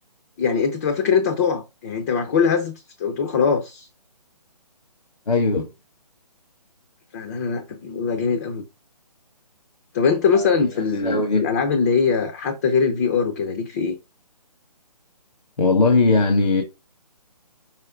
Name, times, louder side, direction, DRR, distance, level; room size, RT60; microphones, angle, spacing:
voice 1, 0.4-3.9 7.1-8.6 9.9-14.0, left 5 dB, 25° left, 0.7 m, -22 dB
voice 2, 5.3-5.7 10.3-11.4 15.6-16.6, left 3 dB, 70° left, 1.5 m, -20 dB
5.8 x 4.5 x 3.5 m
figure-of-eight pair, 155°, 21 cm